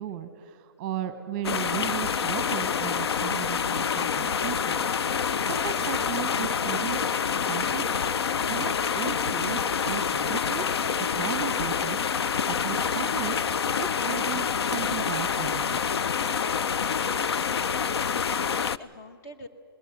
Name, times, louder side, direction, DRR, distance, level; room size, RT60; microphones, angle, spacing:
voice 1, 0.0-4.8 5.4-7.1 7.3-10.8 11.1-13.5 13.8-15.8, right 10 dB, 25° right, 10 dB, 0.9 m, -36 dB
sound 1, 1.4-18.8, left 7 dB, 85° left, 0.5 m, -27 dB
voice 2, 17.1-19.5, left 2 dB, 35° left, 8 dB, 1.2 m, -47 dB
19.5 x 18.5 x 8.1 m, 2.2 s
hypercardioid pair, 165°, 13 cm